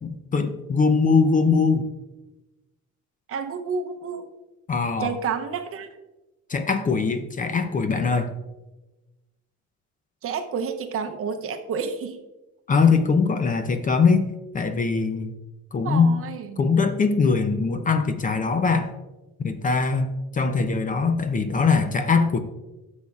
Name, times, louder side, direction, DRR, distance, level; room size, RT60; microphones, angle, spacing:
voice 1, 0.0-1.9 4.7-5.1 6.5-8.3 12.7-14.3 14.5-15.3 15.7-16.1 16.6-18.9 19.4-22.4, left 4 dB, 25° left, 8 dB, 0.5 m, -21 dB
voice 2, 3.3-4.3 5.0-5.9 10.2-12.2 15.8-16.7, right 6 dB, 50° right, 7 dB, 0.8 m, -30 dB
10.5 x 7.1 x 2.4 m, 1.1 s
cardioid pair, 130°, 30 cm